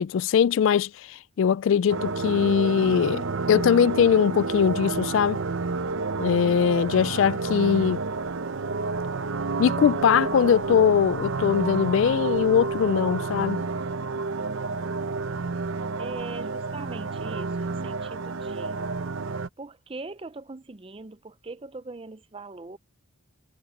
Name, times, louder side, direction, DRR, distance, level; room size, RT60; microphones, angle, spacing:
voice 1, 0.0-5.4 6.2-8.0 9.6-13.6, left 7 dB, 65° left, 0.3 m, -21 dB
sound 1, 1.9-19.5, right 4 dB, 70° right, 0.7 m, -30 dB
voice 2, 16.0-18.8 19.6-22.8, right 3 dB, 25° right, 0.5 m, -41 dB
head